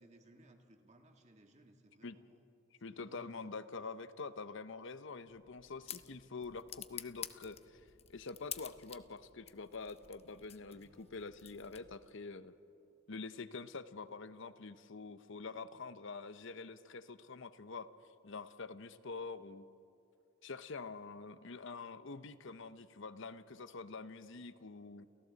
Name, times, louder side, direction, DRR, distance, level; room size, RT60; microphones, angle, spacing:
voice 1, 0.0-2.4 2.8-3.5, right 1 dB, 35° right, 4 dB, 1.8 m, -62 dB
voice 2, 2.8-7.8 8.1-12.5 13.1-17.9 18.2-19.7 20.4-25.1, left 4 dB, 65° left, 13 dB, 0.8 m, -46 dB
sound 1, 5.3-12.2, left 9 dB, 30° left, 0.7 m, -50 dB
Acoustic guitar / Strum, 10.7-14.0, left 1 dB, 55° right, 7.3 m, -75 dB
29.5 x 29.0 x 4.1 m, 2.6 s
head